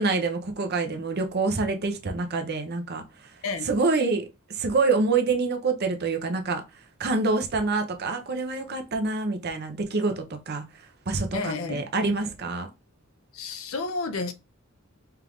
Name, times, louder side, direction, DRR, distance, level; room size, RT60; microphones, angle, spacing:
voice 1, 0.0-3.0 3.6-4.2 4.5-6.6 7.0-10.6 11.1-12.7, right 3 dB, 50° right, 0.7 m, -26 dB
voice 2, 11.3-11.9 13.3-14.3, left 4 dB, 80° left, 0.6 m, -31 dB
4.5 x 2.5 x 3.4 m
head